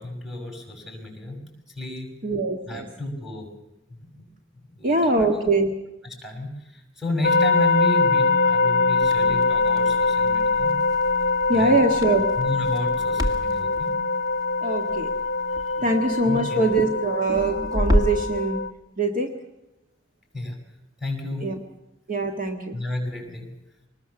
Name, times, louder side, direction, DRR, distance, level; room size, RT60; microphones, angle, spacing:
voice 1, 0.0-1.4 1.7-2.1 2.7-3.5 4.2-4.3 4.7-5.3 6.0-10.8 11.5-11.8 12.4-13.9 15.6-15.9 16.2-16.6 20.3-20.6 21.0-21.5 22.7-23.5, left 1 dB, ahead, 1 dB, 6.3 m, -32 dB
voice 2, 2.2-2.9 4.8-5.7 11.5-12.2 14.6-15.1 15.8-18.6 19.0-19.3 21.4-21.6 22.1-22.8, right 2 dB, 45° right, 3 dB, 1.7 m, -23 dB
sound 1, 7.2-18.7, left 4 dB, 50° left, 0.7 m, -23 dB
Crackle, 9.0-18.3, left 1 dB, 20° right, 2.0 m, -31 dB
24.0 x 20.0 x 7.1 m, 0.95 s
head